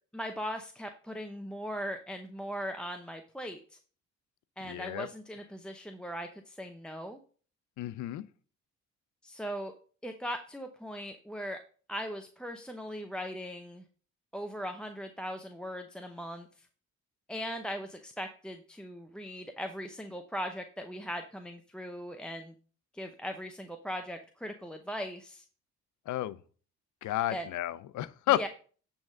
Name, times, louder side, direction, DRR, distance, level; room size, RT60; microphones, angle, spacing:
voice 1, 0.1-3.8 4.6-7.2 9.2-9.7 10.0-11.6 11.9-13.8 14.3-16.7 17.3-22.5 22.9-25.4 27.3-27.5 28.3-28.5, equal, 5° left, 0.7 m, -39 dB
voice 2, 4.6-5.1 7.8-8.3 26.1-26.4 27.0-28.5, left 14 dB, 75° left, 0.6 m, -31 dB
8.8 x 3.6 x 6.4 m
cardioid pair, 90°, 30 cm